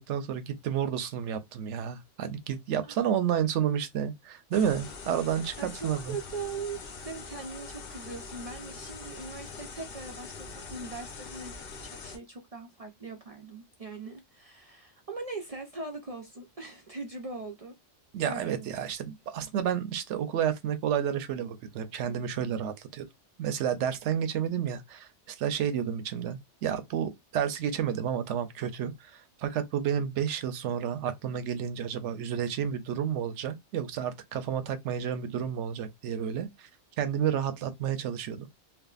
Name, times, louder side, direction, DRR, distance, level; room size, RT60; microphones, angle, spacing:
voice 1, 0.0-6.2 18.1-23.0 23.4-29.1 29.4-36.7 37.0-38.5, right 9 dB, 75° right, 0.9 m, -31 dB
sound 1, 4.5-12.2, left 4 dB, 55° left, 0.8 m, -43 dB
voice 2, 5.6-17.7 18.2-18.7, right 4 dB, 55° right, 0.4 m, -41 dB
3.4 x 2.1 x 2.3 m
omnidirectional pair, 1.2 m